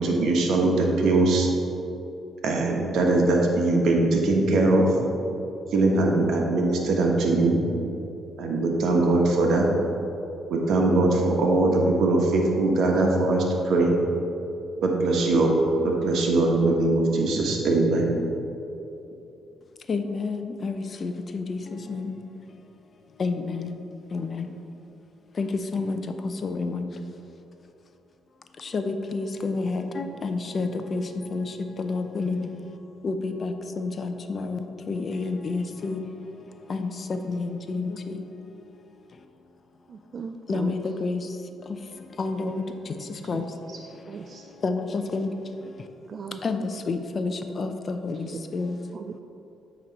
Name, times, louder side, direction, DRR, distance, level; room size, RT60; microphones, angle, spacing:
voice 1, 0.0-1.5 2.4-4.9 5.7-7.6 8.4-9.7 10.5-14.0 14.8-15.6 15.8-18.1, right 2 dB, 75° right, 0 dB, 1.1 m, -21 dB
voice 2, 19.8-22.8 23.1-24.7 25.3-27.0 28.5-39.3 40.5-43.7 44.2-45.9 46.4-49.1, left 3 dB, 45° left, 7 dB, 0.5 m, -31 dB
voice 3, 39.9-40.8 43.3-43.8 44.1-44.4 46.1-46.4 47.6-47.7 48.3-48.4 48.9-49.2, right 5 dB, 50° right, 6 dB, 0.3 m, -38 dB
8.6 x 3.1 x 5.3 m, 2.8 s
cardioid pair, 90°, 0 cm